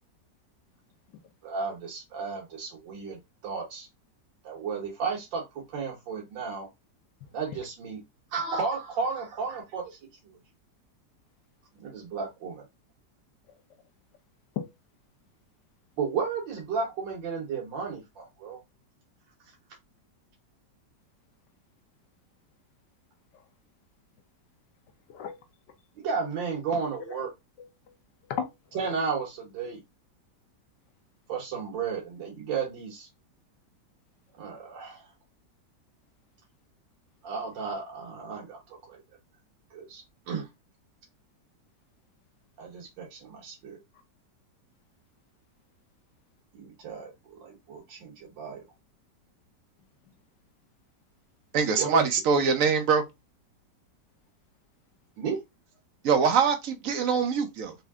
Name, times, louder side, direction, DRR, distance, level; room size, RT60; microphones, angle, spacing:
voice 1, 1.4-3.9 4.4-6.7 7.3-8.0 8.3-10.0 11.8-12.7 16.0-18.6 26.0-27.3 28.8-29.8 31.3-33.1 34.4-35.1 37.2-39.0 39.7-40.5 42.6-43.8 46.5-48.6 51.8-52.1 55.2-55.4, right 5 dB, 90° right, 1.7 m, -33 dB
voice 2, 25.1-25.4 26.8-27.2 27.6-27.9 28.2-28.9, left 8 dB, 75° left, 1.4 m, -37 dB
voice 3, 51.5-53.0 56.0-57.8, right 5 dB, 60° right, 1.0 m, -23 dB
4.2 x 2.7 x 3.5 m
omnidirectional pair, 1.9 m